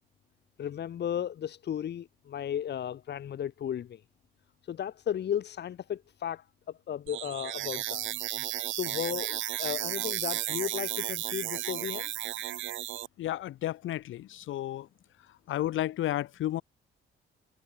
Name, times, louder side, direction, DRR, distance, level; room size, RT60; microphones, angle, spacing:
voice 1, 0.6-4.0 4.6-6.4 6.9-8.1 8.7-12.2, left 9 dB, 60° left, 1.5 m, -35 dB
sound 1, 7.1-13.1, right 14 dB, 75° right, 0.8 m, -34 dB
voice 2, 13.2-14.9 15.5-16.6, left 13 dB, 80° left, 3.8 m, -32 dB
cardioid pair, 90°, 20 cm